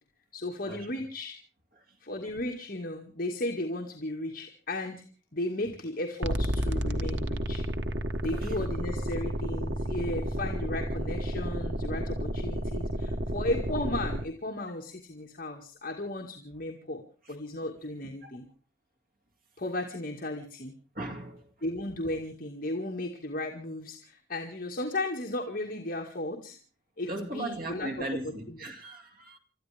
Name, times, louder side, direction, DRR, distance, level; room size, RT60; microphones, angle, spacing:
voice 1, 0.3-1.4 2.0-5.0 5.3-7.6 8.2-17.0 17.3-18.5 19.6-20.7 21.6-26.6 27.0-28.2 28.5-28.6, left 1 dB, 50° left, 2.0 m, -35 dB
sound 1, 6.2-14.2, right 1 dB, 90° right, 1.4 m, -31 dB
voice 2, 20.9-21.5 27.1-29.4, right 2 dB, 55° right, 2.3 m, -38 dB
30.0 x 13.5 x 3.5 m
head